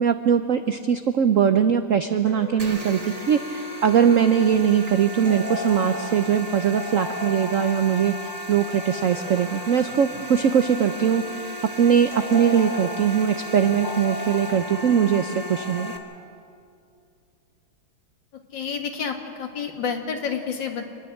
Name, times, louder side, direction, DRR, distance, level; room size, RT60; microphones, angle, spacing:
voice 1, 0.0-8.2 8.5-11.4 11.8-15.9, right 8 dB, 80° right, 9 dB, 0.7 m, -21 dB
sound 1, 2.3-16.0, left 3 dB, 45° left, 3.8 m, -37 dB
sound 2, 2.6-16.0, equal, 20° right, 1.3 m, -36 dB
voice 2, 18.3-20.9, left 6 dB, 65° left, 4 dB, 2.4 m, -29 dB
26.5 x 10.0 x 9.9 m, 2.5 s
omnidirectional pair, 2.2 m